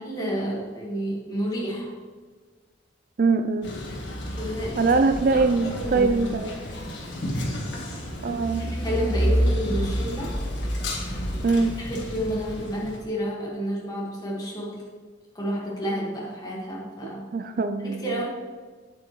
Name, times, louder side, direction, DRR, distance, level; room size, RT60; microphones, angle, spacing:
voice 1, 0.0-1.9 4.4-4.8 5.3-6.4 8.5-10.4 11.8-14.8 15.3-17.3 17.8-18.3, equal, 20° left, -4 dB, 1.6 m, -30 dB
voice 2, 3.2-3.7 4.8-6.5 8.2-8.7 11.4-11.7 17.0-18.3, right 4 dB, 50° right, 9 dB, 0.3 m, -23 dB
Male speech man speaking, 3.6-13.0, equal, 80° left, 1.6 m, -29 dB
8.7 x 8.2 x 3.1 m, 1.5 s
head